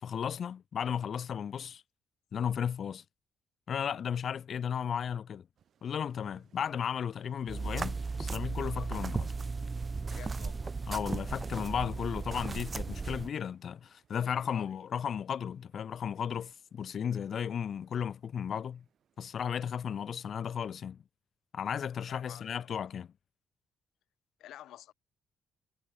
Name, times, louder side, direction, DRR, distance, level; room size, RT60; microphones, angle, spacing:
voice 1, 0.0-1.8 2.3-3.0 3.7-5.5 5.8-9.3 10.9-18.8 19.2-21.0 21.5-23.1, left 8 dB, 45° left, 0.6 m, -35 dB
sound 1, 5.6-20.0, right 8 dB, 50° right, 7.2 m, -69 dB
sound 2, 7.5-13.3, right 4 dB, 25° right, 0.3 m, -35 dB
voice 2, 10.1-10.8 14.2-14.7 21.9-22.8 24.4-24.9, left 13 dB, 80° left, 2.2 m, -51 dB
cardioid pair, 150°, 0 cm